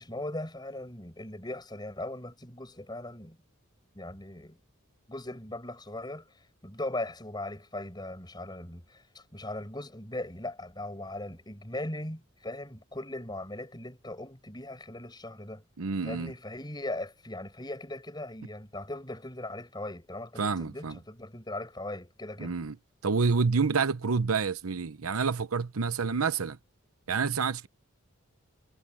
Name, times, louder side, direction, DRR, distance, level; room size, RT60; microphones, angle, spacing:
voice 1, 0.0-3.4 3.9-4.6 5.1-15.6 16.0-22.6, left 1 dB, 20° left, 6.2 m, -39 dB
voice 2, 15.8-16.3 20.4-21.0 22.4-22.8 23.0-26.6 27.1-27.7, right 5 dB, 90° right, 0.8 m, -28 dB
head